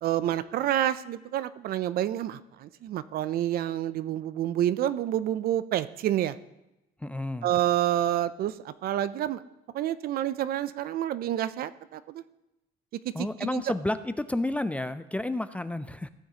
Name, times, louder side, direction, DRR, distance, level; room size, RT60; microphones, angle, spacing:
voice 1, 0.0-6.3 7.4-9.4 9.7-12.2 13.4-13.6, right 12 dB, 65° right, 15 dB, 0.5 m, -28 dB
voice 2, 7.0-7.5 13.1-16.1, left 1 dB, 10° left, 12 dB, 0.3 m, -31 dB
15.0 x 7.1 x 2.9 m, 0.93 s
cardioid pair, 110°, 17 cm